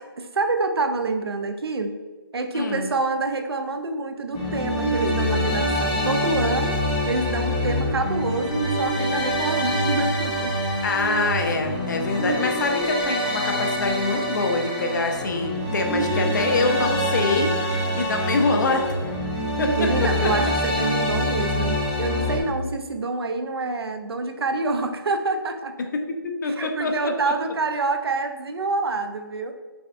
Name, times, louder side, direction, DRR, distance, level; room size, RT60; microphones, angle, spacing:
voice 1, 0.3-1.9 2.3-6.8 7.1-10.6 19.8-25.8 26.4-29.5, right 3 dB, 80° right, 7 dB, 0.6 m, -27 dB
voice 2, 2.5-2.9 10.8-18.9 19.6-20.3 25.9-27.3, left 3 dB, 50° left, 4 dB, 0.6 m, -25 dB
sound 1, 4.3-22.4, equal, 15° left, 0.8 m, -25 dB
6.1 x 3.3 x 2.5 m, 1.3 s
hypercardioid pair, 160°, 13 cm